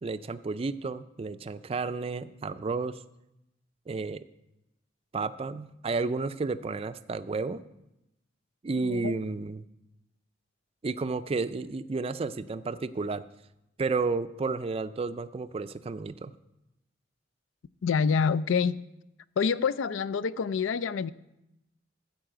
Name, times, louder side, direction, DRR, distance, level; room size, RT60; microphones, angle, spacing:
voice 1, 0.0-3.0 3.9-4.2 5.1-7.6 8.6-9.6 10.8-13.2 13.8-16.3, right 4 dB, 30° right, 13 dB, 0.4 m, -32 dB
voice 2, 8.8-9.1 17.8-18.8 19.4-21.1, left 6 dB, 85° left, 17 dB, 0.4 m, -27 dB
13.5 x 4.8 x 7.9 m, 0.88 s
head